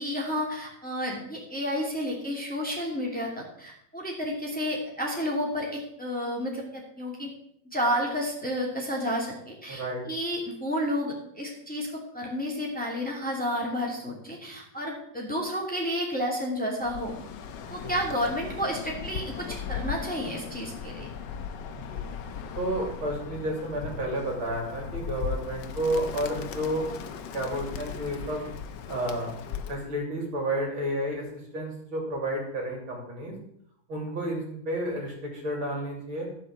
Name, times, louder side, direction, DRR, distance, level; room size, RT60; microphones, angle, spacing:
voice 1, 0.0-7.3 7.7-11.9 12.1-17.1 17.7-21.1, equal, 5° left, -2 dB, 2.7 m, -31 dB
voice 2, 9.7-10.0 17.7-17.9 21.7-22.0 22.6-26.9 27.3-28.5 28.9-29.3 29.7-33.4 33.9-36.3, right 1 dB, 70° right, -1 dB, 3.9 m, -31 dB
Bird, 16.8-29.9, left 7 dB, 65° left, 1.4 m, -38 dB
14.0 x 5.8 x 7.4 m, 0.71 s
omnidirectional pair, 2.3 m